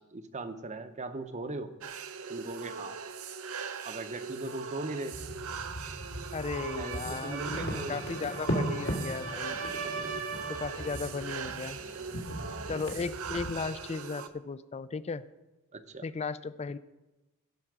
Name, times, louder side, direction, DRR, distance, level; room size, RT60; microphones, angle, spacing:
voice 1, 0.1-1.7 2.3-3.0 3.8-5.2 6.8-8.0 9.8-9.9 12.4-12.8 15.7-16.0, right 2 dB, 35° right, 10 dB, 0.8 m, -39 dB
sound 1, 1.8-14.3, right 5 dB, 70° right, 0.7 m, -40 dB
sound 2, 5.1-13.5, equal, 75° left, 2.1 m, -38 dB
sound 3, 6.2-11.1, right 4 dB, 90° right, 2.3 m, -41 dB
voice 2, 6.3-9.6 10.5-11.8 12.7-15.2 16.0-16.8, left 4 dB, 30° left, 16 dB, 0.4 m, -36 dB
16.0 x 5.6 x 6.0 m, 1.1 s
head